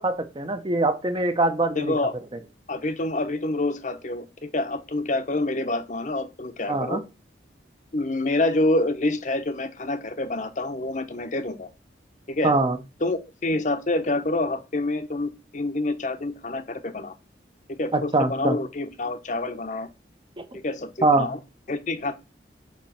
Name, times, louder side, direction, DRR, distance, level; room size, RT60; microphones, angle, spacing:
voice 1, 0.0-1.9 6.7-7.0 12.4-12.8 17.9-18.6 20.4-20.6 21.0-21.3, right 2 dB, 25° right, 0.7 m, -23 dB
voice 2, 1.8-2.1 2.7-7.0 7.9-11.7 12.3-12.5 13.0-17.1 17.8-19.9 20.5-21.4 21.7-22.1, left 2 dB, 45° left, 0.8 m, -27 dB
7.3 x 3.1 x 5.7 m
head